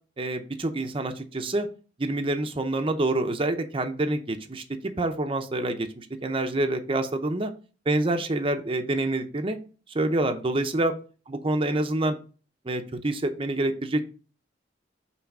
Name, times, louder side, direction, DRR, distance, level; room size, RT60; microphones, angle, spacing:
voice 1, 0.2-1.7 2.0-7.5 7.9-9.6 9.9-10.9 11.3-12.2 12.6-14.0, right 2 dB, 30° right, 6 dB, 0.7 m, -27 dB
5.8 x 4.0 x 5.3 m, 0.37 s
head